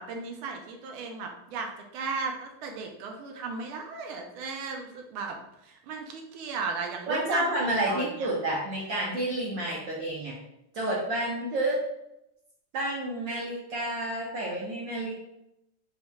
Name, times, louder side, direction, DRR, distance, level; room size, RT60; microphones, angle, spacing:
voice 1, 0.0-5.4 5.6-8.3, right 4 dB, 90° right, 3 dB, 1.5 m, -36 dB
voice 2, 7.1-10.4 10.7-11.8 12.7-15.1, right 1 dB, 70° right, -4 dB, 1.4 m, -30 dB
4.3 x 3.5 x 2.3 m, 0.85 s
omnidirectional pair, 2.3 m